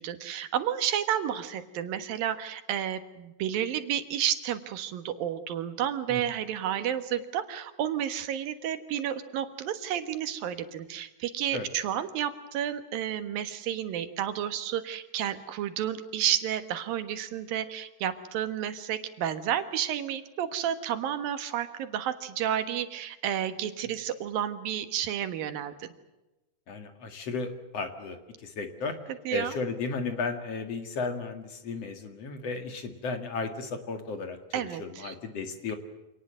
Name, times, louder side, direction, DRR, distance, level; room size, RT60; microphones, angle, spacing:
voice 1, 0.0-25.9 29.3-29.6 34.5-35.2, right 10 dB, 80° right, 10 dB, 3.2 m, -31 dB
voice 2, 26.7-29.0 29.3-35.8, left 4 dB, 50° left, 7 dB, 2.8 m, -34 dB
26.5 x 19.0 x 7.7 m, 1.0 s
omnidirectional pair, 4.1 m